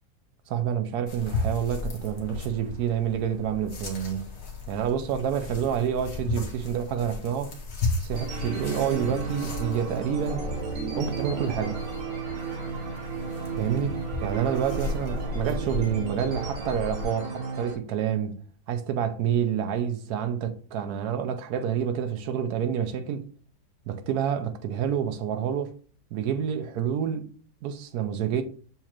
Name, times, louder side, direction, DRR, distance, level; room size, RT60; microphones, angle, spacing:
voice 1, 0.5-4.3 4.7-7.5 8.0-10.4 11.0-11.8 13.6-13.9 14.2-18.4 18.7-23.2 23.9-25.7 26.1-27.3 27.6-28.4, right 8 dB, 70° right, 1.0 m, -28 dB
sound 1, 1.1-17.1, left 3 dB, 45° left, 1.0 m, -35 dB
sound 2, 8.1-17.7, right 4 dB, 85° right, 2.1 m, -33 dB
7.2 x 2.4 x 2.9 m
omnidirectional pair, 1.9 m